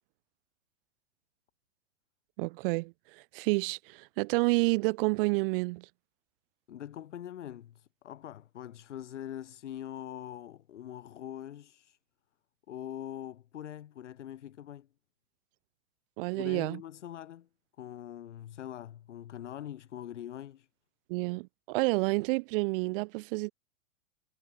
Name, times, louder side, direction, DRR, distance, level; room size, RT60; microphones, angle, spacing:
voice 1, 2.4-5.9 16.2-16.8 21.1-23.5, right 25 dB, 45° right, 1.8 m, -29 dB
voice 2, 6.7-12.0 12.7-14.9 16.3-17.5 17.8-20.7, left 11 dB, 70° left, 3.4 m, -43 dB
hypercardioid pair, 110°, 37 cm